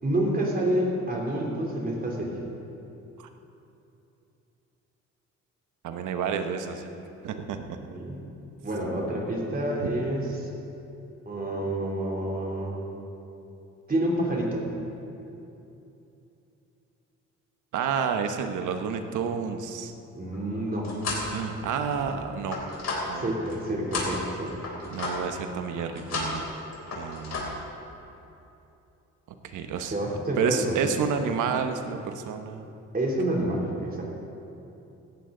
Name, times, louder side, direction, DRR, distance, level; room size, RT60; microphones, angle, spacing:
voice 1, 0.0-2.4 7.7-8.3 8.6-10.5 11.2-12.7 13.9-14.6 20.1-20.9 23.1-24.7 29.9-30.9 32.9-34.0, right 1 dB, 30° right, -2 dB, 3.3 m, -28 dB
voice 2, 5.8-6.9 7.2-7.8 17.7-19.9 21.3-22.6 23.1-23.5 24.9-26.4 26.9-27.6 29.5-29.9 30.4-32.7, right 6 dB, 80° right, 7 dB, 1.1 m, -30 dB
sound 1, 20.3-21.3 21.8-23.6 23.9-25.4 25.8-26.5 26.7-27.5, left 3 dB, 60° left, 3.6 m, -33 dB
17.0 x 14.0 x 3.9 m, 2.9 s
cardioid pair, 90°, 30 cm